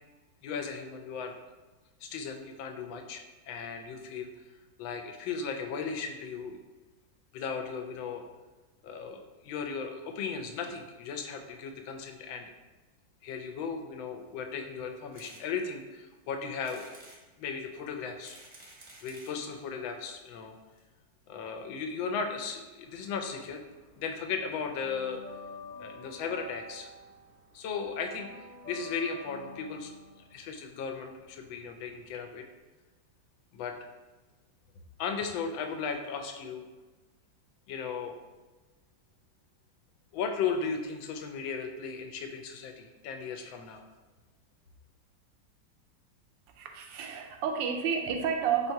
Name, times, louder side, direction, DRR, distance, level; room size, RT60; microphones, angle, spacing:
voice 1, 0.4-1.4 2.0-4.3 4.8-6.6 7.3-8.3 8.8-12.5 13.2-16.9 17.4-18.4 19.0-20.6 21.3-23.6 24.0-25.2 25.8-26.9 27.5-29.9 30.3-32.4 33.5-33.8 35.0-36.6 37.7-38.1 40.1-43.8, left 5 dB, 90° left, 5 dB, 1.4 m, -36 dB
sound 1, 15.1-15.4 15.9-16.0 16.6-17.2 18.0-19.4 20.2-20.3 20.5-20.6 20.8-20.9, right 2 dB, 35° right, 0.6 m, -52 dB
sound 2, 22.9-24.0 24.2-32.2, left 2 dB, 70° left, 0.4 m, -48 dB
voice 2, 46.6-48.7, right 7 dB, 80° right, 4 dB, 1.3 m, -30 dB
4.4 x 2.7 x 4.5 m, 1.2 s
omnidirectional pair, 2.0 m